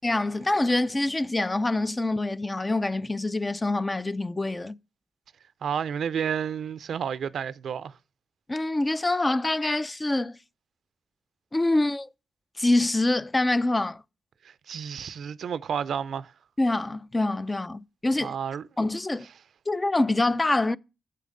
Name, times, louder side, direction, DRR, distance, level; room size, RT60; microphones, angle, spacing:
voice 1, 0.0-4.8 8.5-10.4 11.5-12.1 12.6-14.0 16.6-18.4 18.8-19.3 19.7-20.8, left 2 dB, 25° left, 0.4 m, -25 dB
voice 2, 5.6-8.0 14.4-16.3 18.2-18.7, right 8 dB, 75° right, 0.4 m, -31 dB
8.4 x 6.6 x 5.2 m
supercardioid pair, 50°, 0 cm